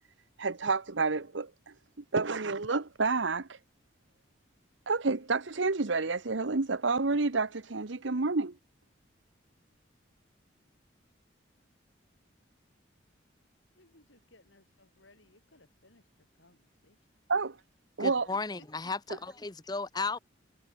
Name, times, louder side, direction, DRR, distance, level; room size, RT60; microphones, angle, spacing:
voice 1, 0.4-1.7 2.1-3.6 4.9-8.5 17.3-17.6 18.0-18.3, right 3 dB, 75° right, 1.0 m, -29 dB
voice 2, 13.8-17.0 18.8-18.9, left 2 dB, 80° left, 7.6 m, -63 dB
voice 3, 18.0-20.2, left 4 dB, 20° left, 0.7 m, -35 dB
head